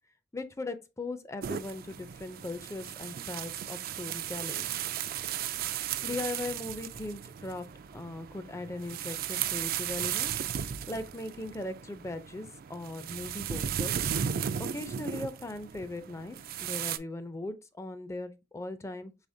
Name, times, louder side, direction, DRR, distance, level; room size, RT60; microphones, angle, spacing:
voice 1, 0.3-4.7 6.0-7.6 7.9-10.3 10.9-14.0 14.6-19.1, left 2 dB, 15° left, 0.4 m, -39 dB
sound 1, 1.4-17.0, right 9 dB, 55° right, 0.3 m, -36 dB
4.9 x 3.6 x 2.6 m
head